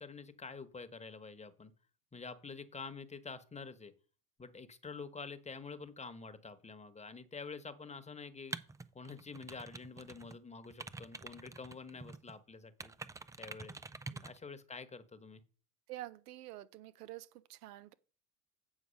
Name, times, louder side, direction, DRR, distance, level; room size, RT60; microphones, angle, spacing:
voice 1, 0.0-1.7 2.1-3.9 4.4-8.5 8.9-12.9 13.4-13.8 14.2-15.4, left 4 dB, 15° left, 1.2 m, -48 dB
sound 1, 8.5-10.4 10.6-12.3 12.8-14.4, right 3 dB, 10° right, 0.3 m, -47 dB
voice 2, 15.9-17.9, right 15 dB, 80° right, 0.8 m, -48 dB
8.5 x 4.6 x 6.4 m
hypercardioid pair, 75°, 46 cm